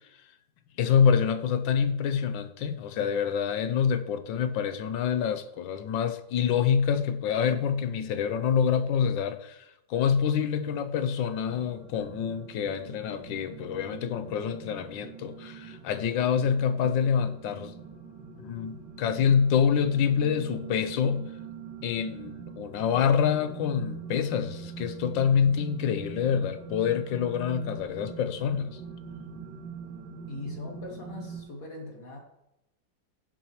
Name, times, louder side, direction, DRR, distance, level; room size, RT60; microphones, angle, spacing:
voice 1, 0.8-9.6 9.9-17.7 18.4-21.2 21.8-28.8, left 7 dB, 80° left, 10 dB, 1.5 m, -26 dB
sound 1, 11.5-31.4, right 6 dB, 65° right, 2.5 m, -43 dB
voice 2, 30.3-32.2, left 2 dB, 50° left, 1 dB, 2.3 m, -40 dB
16.0 x 7.2 x 3.1 m, 0.89 s
omnidirectional pair, 2.0 m